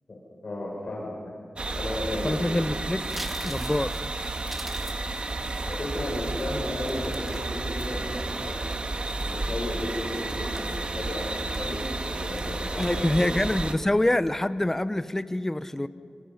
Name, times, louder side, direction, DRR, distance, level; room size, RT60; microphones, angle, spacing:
voice 1, 0.4-1.1 1.7-2.4 5.6-8.6 9.2-13.4, left 1 dB, 50° left, -4 dB, 7.2 m, -34 dB
sound 1, 1.6-13.7, right 2 dB, 50° right, 1.6 m, -32 dB
voice 2, 2.2-3.1 3.4-3.9 12.8-15.9, left 1 dB, 15° left, 13 dB, 0.9 m, -25 dB
sound 2, 3.1-7.9 8.3-9.2 9.7-9.9 10.3-11.0 11.5-11.8 12.1-12.6 12.8-13.2 13.6-13.8, equal, 5° right, 2.0 m, -44 dB
29.0 x 26.5 x 5.8 m, 2.4 s
wide cardioid pair, 75°, 2 cm